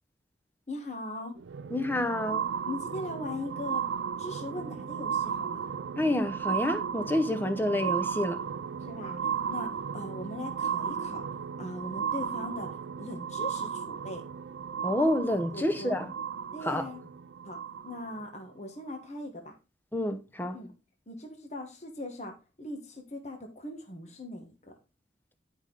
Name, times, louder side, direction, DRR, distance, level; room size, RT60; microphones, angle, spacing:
voice 1, 0.7-1.3 2.6-3.8 4.2-5.7 8.8-11.2 11.6-14.2 15.5-16.0 16.5-17.0 17.4-17.6 17.8-19.5 20.5-20.7 21.1-24.5, left 1 dB, 35° left, 1.4 m, -40 dB
sound 1, 1.4-18.2 19.0-19.1, right 7 dB, 85° right, 0.4 m, -35 dB
voice 2, 1.7-2.5 6.0-8.4 14.8-16.1 16.6-16.8 19.9-20.6, left 1 dB, 10° left, 0.8 m, -28 dB
10.5 x 5.3 x 3.9 m
head